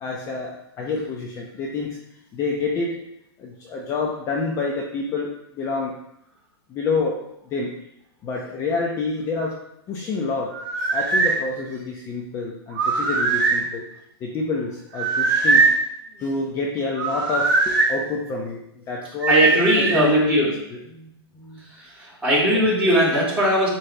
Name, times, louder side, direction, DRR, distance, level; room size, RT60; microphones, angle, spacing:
voice 1, 0.0-2.0 2.3-3.0 3.4-5.9 6.7-7.7 8.2-9.5 9.9-13.9 14.2-15.7 16.2-19.3 19.8-20.4, left 3 dB, 25° left, -2 dB, 0.8 m, -27 dB
sound 1, 10.5-11.4 12.7-13.6 14.9-15.8 17.0-17.9 19.2-20.1, right 3 dB, 40° right, 1.5 m, -20 dB
voice 2, 19.3-20.5 20.8-21.1 21.3-23.7, equal, 10° right, -8 dB, 2.5 m, -20 dB
9.6 x 3.3 x 3.4 m, 0.75 s
hypercardioid pair, 145°, 14 cm